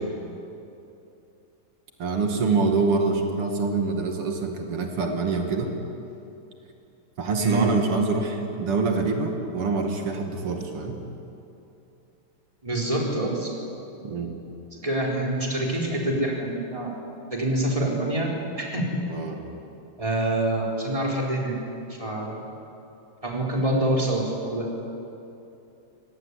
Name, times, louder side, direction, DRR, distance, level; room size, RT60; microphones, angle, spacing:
voice 1, 2.0-5.7 7.2-11.0 14.0-14.3 19.1-19.4, right 4 dB, 85° right, 3 dB, 3.2 m, -25 dB
voice 2, 7.4-7.7 12.6-13.6 14.7-17.0 17.3-18.3 18.6-19.0 20.0-21.6 21.9-22.4 23.2-24.7, right 1 dB, 15° right, -2 dB, 4.4 m, -26 dB
26.0 x 18.5 x 9.9 m, 2.8 s
omnidirectional pair, 2.4 m